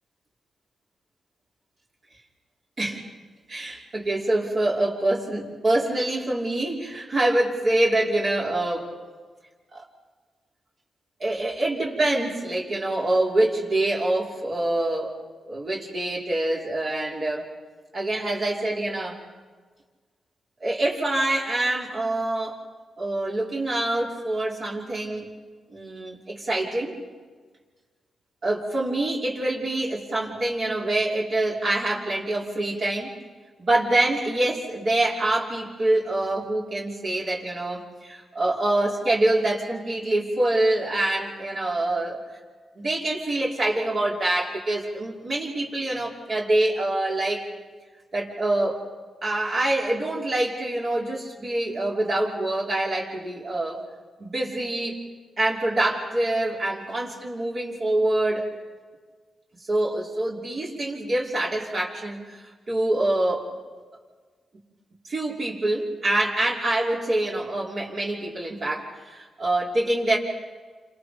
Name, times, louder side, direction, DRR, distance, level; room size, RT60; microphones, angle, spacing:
voice 1, 3.5-8.9 9.7-9.8 11.2-15.1 15.5-17.5 17.9-19.2 20.6-22.6 23.0-25.3 25.7-26.9 28.4-33.1 33.6-42.2 42.8-47.5 48.1-48.8 49.2-53.8 54.2-55.0 55.4-58.5 59.7-63.5 65.1-70.2, right 1 dB, 55° right, -4 dB, 5.6 m, -25 dB
30.0 x 27.5 x 5.3 m, 1.5 s
cardioid pair, 85°, 0 cm